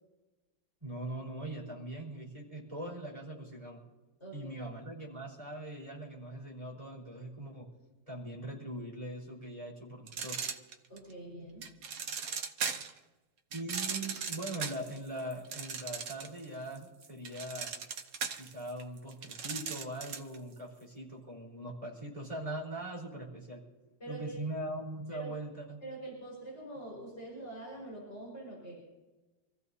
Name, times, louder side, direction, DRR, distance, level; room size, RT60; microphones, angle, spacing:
voice 1, 0.8-3.8 4.3-7.7 8.1-10.4 13.5-17.7 18.4-23.6 24.1-25.8, right 1 dB, 15° right, -3 dB, 4.5 m, -41 dB
voice 2, 4.2-4.6 10.9-11.8 24.0-24.4 25.1-25.3 25.8-28.8, right 2 dB, 35° left, -5 dB, 5.3 m, -45 dB
sound 1, 10.1-11.1 11.6-13.0 13.5-16.4 16.8-20.4, right 6 dB, 60° right, 1.2 m, -38 dB
27.5 x 15.0 x 2.8 m, 1.2 s
omnidirectional pair, 2.0 m